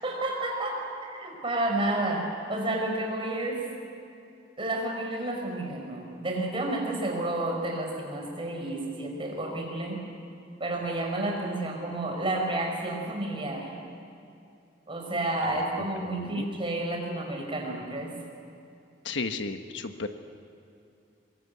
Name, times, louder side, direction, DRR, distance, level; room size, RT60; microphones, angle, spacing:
voice 1, 0.0-3.6 4.6-10.0 10.6-13.7 14.9-18.1, right 2 dB, 30° right, 1 dB, 5.0 m, -30 dB
voice 2, 15.5-16.5 19.0-20.1, left 3 dB, 85° left, 8 dB, 1.3 m, -35 dB
23.0 x 22.0 x 8.2 m, 2.6 s
head